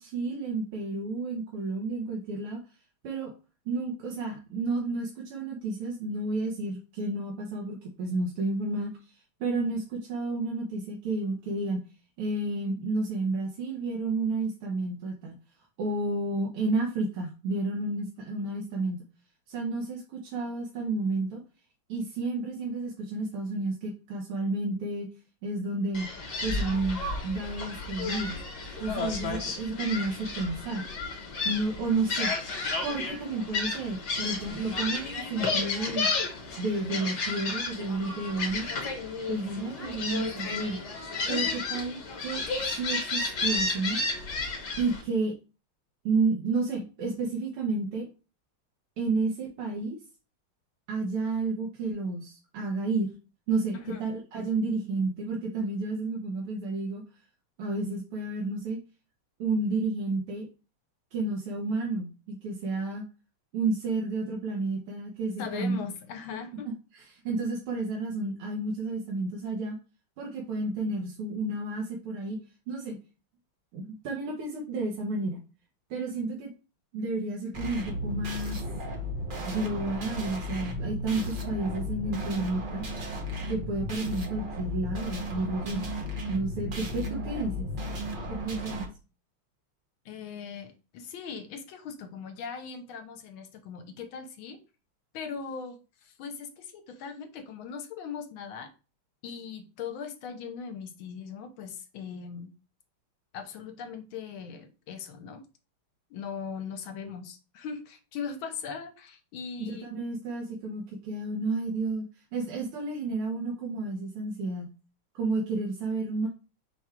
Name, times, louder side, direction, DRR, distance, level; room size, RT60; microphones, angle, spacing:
voice 1, 0.0-2.6 3.0-3.3 3.7-8.9 9.4-11.8 12.2-15.3 15.8-19.0 19.5-21.4 21.9-25.1 25.4-26.1 26.4-28.4 28.8-30.9 31.4-32.3 32.8-36.1 36.6-38.7 39.3-40.8 41.3-42.4 42.8-44.0 44.8-45.3 46.1-48.1 49.0-50.0 50.9-53.1 53.5-57.0 57.6-58.8 59.4-60.5 61.1-63.0 63.5-65.8 66.9-69.8 70.2-72.4 72.7-73.0 73.7-75.4 75.9-76.5 76.9-78.6 79.5-82.8 83.5-85.8 86.3-87.7 88.3-88.9 109.6-112.1 112.3-114.7 115.2-116.3, right 3 dB, 90° right, 1.9 m, -31 dB
Gull seagull, 25.9-45.0, left 3 dB, 55° left, 1.5 m, -32 dB
voice 2, 65.4-66.7 90.0-94.6 95.1-98.7 99.2-102.5 103.3-105.4 106.1-110.0, left 6 dB, 75° left, 1.5 m, -39 dB
sound 1, 77.5-88.8, left 1 dB, 70° right, 0.4 m, -34 dB
5.3 x 2.3 x 4.3 m
omnidirectional pair, 2.4 m